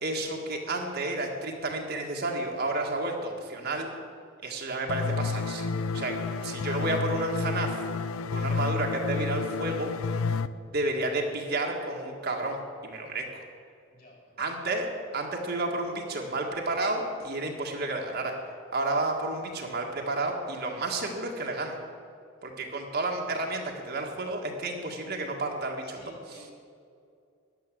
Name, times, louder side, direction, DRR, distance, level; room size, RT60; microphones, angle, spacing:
voice 1, 0.0-3.9 4.4-5.7 5.9-6.2 6.4-7.8 8.3-9.9 10.7-13.4 14.4-18.4 18.7-21.8 22.4-26.5, right 2 dB, 50° right, 1 dB, 1.8 m, -31 dB
sound 1, 4.9-10.5, left 4 dB, 75° left, 0.5 m, -30 dB
voice 2, 13.9-14.5 25.8-26.5, left 1 dB, 45° left, 0 dB, 3.9 m, -54 dB
13.5 x 10.5 x 7.6 m, 2.4 s
head